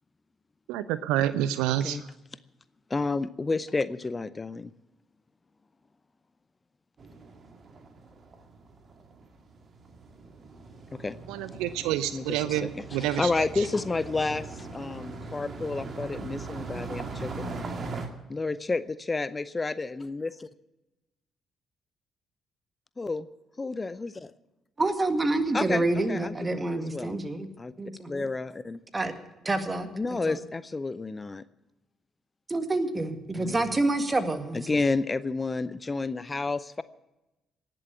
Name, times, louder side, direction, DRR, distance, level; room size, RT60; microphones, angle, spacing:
voice 1, 0.7-2.0 11.3-13.5, right 12 dB, 70° right, 15 dB, 0.5 m, -28 dB
voice 2, 2.9-4.7 10.9-11.2 12.1-17.7 18.3-20.5 23.0-23.3 23.6-24.3 25.5-27.2 27.6-27.7 28.1-28.8 29.9-31.4 33.3-33.7 34.5-36.8, left 3 dB, 30° left, 16 dB, 0.6 m, -31 dB
sound 1, 7.0-18.1, right 3 dB, 45° right, 2.1 m, -40 dB
voice 3, 24.8-27.5 27.8-28.2 28.9-29.1 29.4-29.9 30.3-30.4 32.5-34.6, right 2 dB, 25° right, 9 dB, 1.9 m, -27 dB
18.5 x 7.8 x 8.5 m, 0.99 s
figure-of-eight pair, 45°, 0 cm